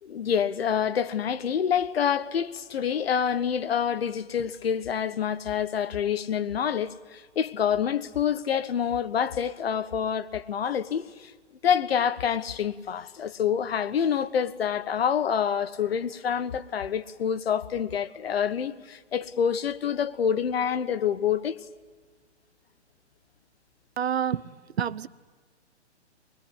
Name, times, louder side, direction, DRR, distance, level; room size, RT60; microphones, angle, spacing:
voice 1, 0.0-11.3 11.6-21.6, left 8 dB, 55° left, 1.3 m, -27 dB
voice 2, 24.0-24.4 24.8-25.1, right 9 dB, 60° right, 1.0 m, -27 dB
25.0 x 21.5 x 9.9 m
hypercardioid pair, 160°, 35 cm